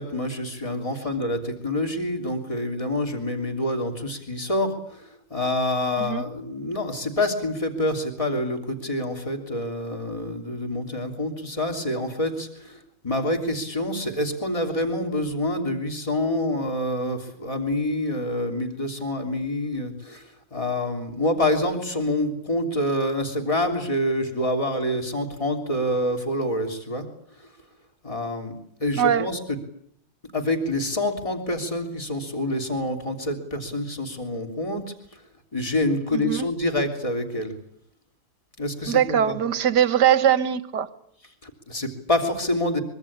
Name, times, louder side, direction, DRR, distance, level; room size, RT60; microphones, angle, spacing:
voice 1, 0.0-27.1 27.4-27.5 28.0-29.4 30.3-35.2 35.5-37.6 38.6-39.4 41.4-42.8, left 1 dB, 15° left, 3.3 m, -27 dB
voice 2, 29.0-29.3 36.1-36.5 38.9-40.9, right 9 dB, 60° right, 1.8 m, -21 dB
24.0 x 23.5 x 8.8 m
omnidirectional pair, 2.2 m